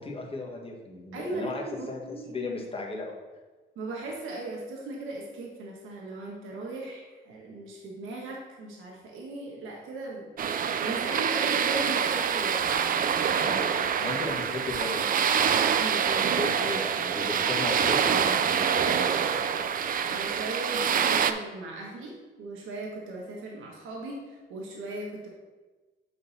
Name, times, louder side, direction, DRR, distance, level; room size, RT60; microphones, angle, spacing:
voice 1, 0.0-3.1 13.4-15.2 16.0-19.6, left 3 dB, 30° left, -1 dB, 1.5 m, -36 dB
voice 2, 1.1-2.3 3.7-10.3 10.8-13.4 15.8-16.3 17.2-17.4 20.1-22.1 22.4-25.3, right 2 dB, 80° right, -2 dB, 1.4 m, -38 dB
sound 1, 10.4-21.3, right 7 dB, 45° right, 0.4 m, -26 dB
8.6 x 3.9 x 4.2 m, 1.3 s
cardioid pair, 90°, 20 cm